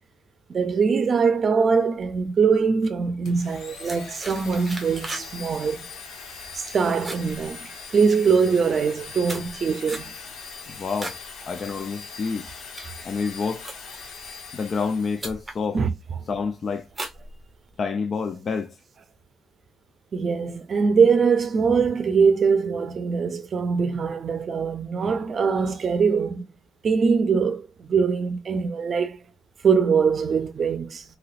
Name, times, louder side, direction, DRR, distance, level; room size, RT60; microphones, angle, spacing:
voice 1, 0.5-5.8 6.7-7.6 7.9-10.1 15.7-15.9 20.1-26.4 26.8-29.2 29.6-31.0, right 5 dB, 45° right, 0.5 m, -22 dB
Domestic sounds home sounds, 3.3-15.4, left 5 dB, 75° left, 0.9 m, -41 dB
sound 1, 3.8-5.3 5.6-6.0 6.3-6.7 6.9-8.1 8.7-11.3 11.6-12.0 12.5-14.1 14.8-14.9 15.2-15.6 16.1-16.5 16.9-17.9, right 2 dB, 15° right, 0.7 m, -38 dB
voice 2, 10.7-11.2 11.5-12.5 13.0-13.7 14.5-15.8 16.3-16.9 17.8-18.7, left 5 dB, 50° left, 0.4 m, -28 dB
3.1 x 2.9 x 2.4 m
cardioid pair, 90°, 0 cm